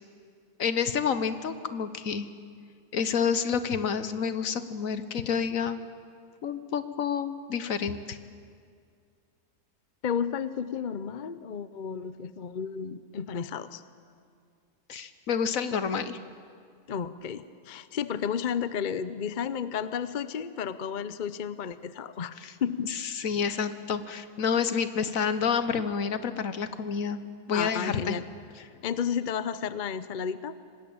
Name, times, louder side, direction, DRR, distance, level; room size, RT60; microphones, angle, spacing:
voice 1, 0.6-2.3 2.9-5.8 6.4-8.2 14.9-16.2 22.4-22.5 22.9-27.2 27.5-28.1, left 6 dB, 60° left, 12 dB, 1.4 m, -29 dB
voice 2, 10.0-13.8 16.9-22.3 22.6-22.9 23.4-23.6 27.5-28.2 28.8-30.6, left 7 dB, 45° left, 14 dB, 0.6 m, -32 dB
25.0 x 19.5 x 8.7 m, 2.2 s
omnidirectional pair, 1.7 m